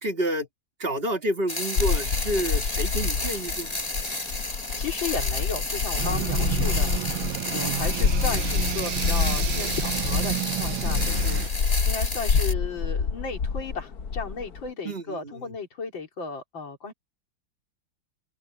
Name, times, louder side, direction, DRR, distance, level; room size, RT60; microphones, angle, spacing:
voice 1, 0.0-0.5 0.8-3.8 6.6-6.7 7.5-7.8 14.8-15.5, equal, 30° right, 2.3 m, -29 dB
sound 1, 1.5-12.5, left 2 dB, 20° left, 2.3 m, -32 dB
sound 2, 1.7-14.7, left 5 dB, 55° left, 1.7 m, -27 dB
voice 2, 4.7-6.9 7.4-16.9, left 5 dB, 75° left, 4.3 m, -34 dB
sound 3, 6.0-11.5, right 15 dB, 85° right, 1.6 m, -31 dB
open air
omnidirectional pair, 2.1 m